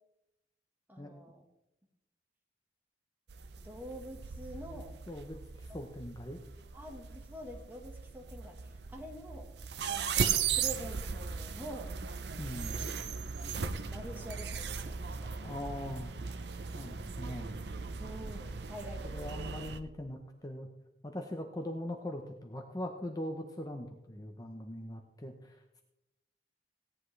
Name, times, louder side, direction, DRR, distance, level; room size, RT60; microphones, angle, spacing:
voice 1, 0.9-1.4 3.6-5.0 5.7-5.8 6.7-9.5 9.9-11.9 12.7-12.9 13.6-15.3 18.0-19.4, right 1 dB, 10° right, 2 dB, 1.4 m, -47 dB
sound 1, 3.3-19.8, right 6 dB, 65° right, 0.7 m, -38 dB
voice 2, 5.1-6.4 12.4-12.9 15.4-16.1 16.7-17.6 19.0-20.7 21.0-25.8, left 1 dB, 20° left, 4 dB, 0.8 m, -41 dB
17.0 x 10.0 x 3.2 m, 0.90 s
head